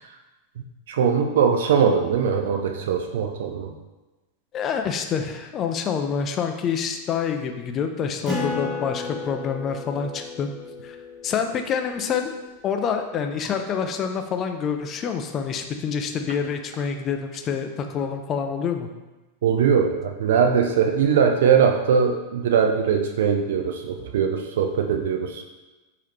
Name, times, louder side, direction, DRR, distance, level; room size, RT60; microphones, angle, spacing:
voice 1, 0.9-3.7 19.4-25.4, right 7 dB, 60° right, 4 dB, 0.4 m, -21 dB
voice 2, 4.5-10.5 10.8-11.0 11.2-12.3 12.6-18.9, left 6 dB, 30° left, 6 dB, 0.4 m, -27 dB
Acoustic guitar, 8.2-13.2, left 3 dB, 10° right, 1.1 m, -34 dB
4.7 x 2.8 x 3.1 m, 1.1 s
figure-of-eight pair, 90°, 0 cm